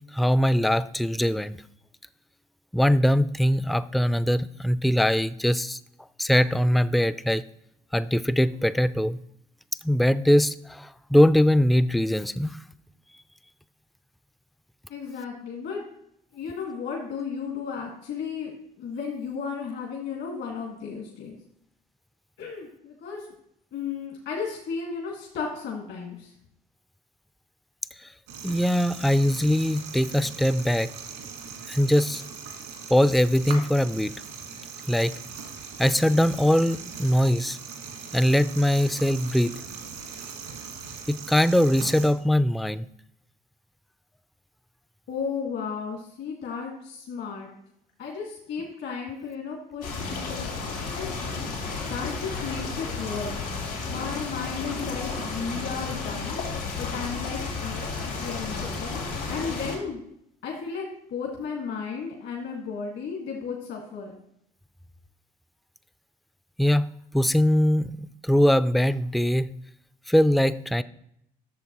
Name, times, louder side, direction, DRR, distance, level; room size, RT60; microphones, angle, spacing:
voice 1, 0.1-1.5 2.7-5.8 6.2-7.4 7.9-9.2 9.8-12.6 28.4-30.9 31.7-32.2 32.9-34.1 34.9-35.1 35.8-37.6 38.1-39.5 41.1-42.9 66.6-66.8 67.1-69.5 70.1-70.8, equal, ahead, 15 dB, 0.3 m, -22 dB
voice 2, 14.9-15.9 16.3-18.5 18.8-21.4 22.4-23.3 23.7-26.3 45.1-47.5 48.0-50.5 50.9-51.2 51.9-53.5 53.9-56.4 56.8-57.9 58.2-60.0 60.4-64.2, left 5 dB, 65° left, -1 dB, 1.8 m, -34 dB
sound 1, 28.3-42.1, right 6 dB, 85° right, 1.7 m, -40 dB
sound 2, 49.8-59.8, left 4 dB, 90° left, 3.1 m, -32 dB
11.5 x 6.9 x 3.0 m, 0.77 s
hypercardioid pair, 60°, 20 cm